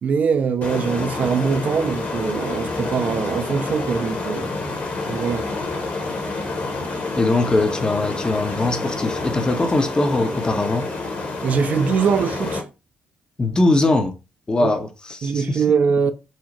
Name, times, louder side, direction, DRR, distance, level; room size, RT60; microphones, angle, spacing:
voice 1, 0.0-4.5 5.1-5.5 11.4-12.6 14.6-14.7 15.2-16.1, right 6 dB, 40° right, 0.3 m, -22 dB
sound 1, 0.6-12.6, left 3 dB, 45° left, 0.9 m, -28 dB
voice 2, 7.2-10.9 13.4-14.1 14.5-15.6, left 2 dB, 20° left, 0.5 m, -21 dB
2.7 x 2.0 x 2.9 m
figure-of-eight pair, 45°, 4 cm